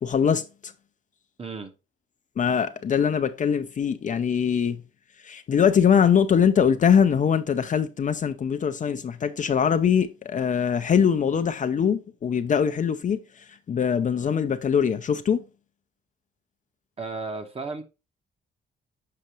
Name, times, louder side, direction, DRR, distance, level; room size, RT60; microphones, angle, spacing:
voice 1, 0.0-0.7 2.4-4.8 5.2-15.4, left 7 dB, 40° left, 0.5 m, -22 dB
voice 2, 1.4-1.8 17.0-17.8, right 3 dB, 30° right, 1.1 m, -34 dB
6.7 x 4.9 x 3.0 m
cardioid pair, 90°, 20 cm